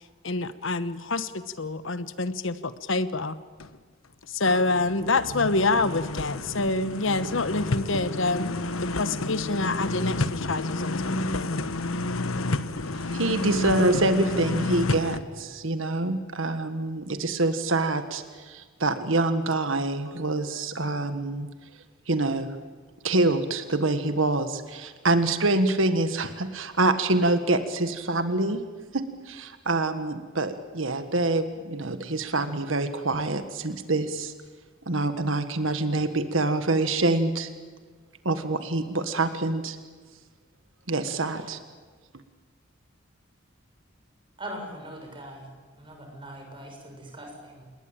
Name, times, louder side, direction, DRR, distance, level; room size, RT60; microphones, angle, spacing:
voice 1, 0.2-3.4 4.3-8.5 8.8-11.6, left 3 dB, 70° left, 13 dB, 1.1 m, -27 dB
sound 1, 3.6-3.8 4.2-15.2, left 2 dB, 90° left, 1.3 m, -30 dB
voice 2, 13.1-21.5 22.1-22.6 23.0-28.6 28.9-34.3 34.9-37.5 38.3-39.8 40.9-41.6, right 2 dB, 75° right, 9 dB, 1.6 m, -26 dB
voice 3, 44.4-47.6, right 1 dB, 25° right, 2 dB, 6.9 m, -41 dB
28.0 x 21.5 x 9.0 m, 1.4 s
head